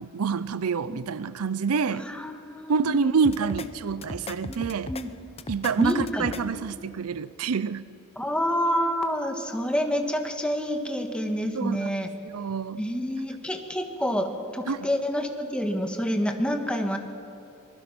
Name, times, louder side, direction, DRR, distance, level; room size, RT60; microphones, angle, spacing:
voice 1, 0.0-2.1 2.7-4.9 5.5-7.8 11.5-11.9 12.2-12.8 14.7-14.9, right 5 dB, 75° right, 16 dB, 0.5 m, -27 dB
voice 2, 1.9-3.1 4.5-5.1 5.8-6.2 8.2-12.1 12.8-17.0, equal, 5° left, 4 dB, 1.6 m, -28 dB
sound 1, 3.2-3.7 4.0-5.0 5.4-6.4, left 3 dB, 25° left, 0.8 m, -37 dB
25.5 x 20.5 x 6.1 m, 2.9 s
head